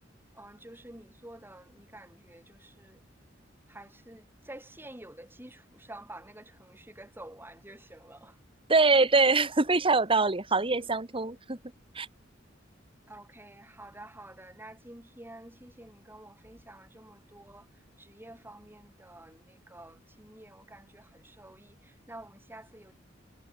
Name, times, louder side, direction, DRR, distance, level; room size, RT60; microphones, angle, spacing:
voice 1, 0.3-3.0 3.7-8.4 13.1-23.0, right 1 dB, 10° right, 7.6 m, -49 dB
voice 2, 8.7-11.6 11.9-12.1, right 3 dB, 30° right, 1.7 m, -24 dB
head